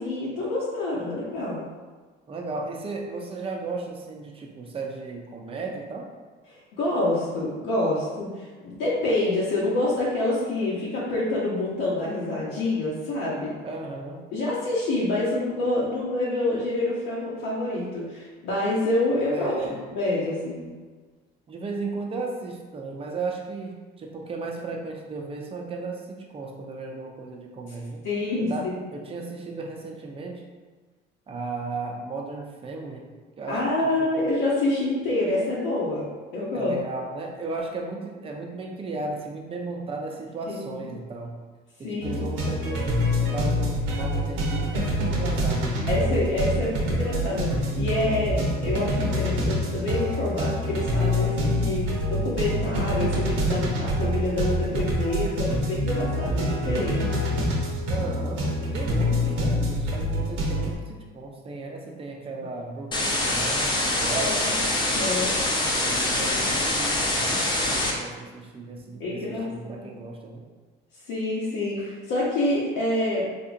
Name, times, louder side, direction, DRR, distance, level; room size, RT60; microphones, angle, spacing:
voice 1, 0.0-1.6 6.8-13.6 14.3-19.5 19.9-20.7 28.0-28.5 33.5-36.1 36.3-36.8 40.5-40.9 41.8-42.2 45.9-57.2 64.1-65.3 69.0-69.9 71.1-73.3, left 2 dB, 80° left, -7 dB, 0.8 m, -27 dB
voice 2, 2.3-6.1 13.6-14.2 19.3-19.8 21.5-28.0 28.4-30.4 31.3-34.1 36.5-41.4 41.8-45.7 57.9-65.1 65.8-70.4, right 3 dB, 30° right, 0 dB, 0.5 m, -35 dB
sound 1, 42.0-60.7, equal, 85° right, 0.9 m, -26 dB
sound 2, 62.9-67.9, left 1 dB, 20° left, 0.6 m, -24 dB
3.5 x 2.7 x 2.5 m, 1.4 s
cardioid pair, 115°, 20 cm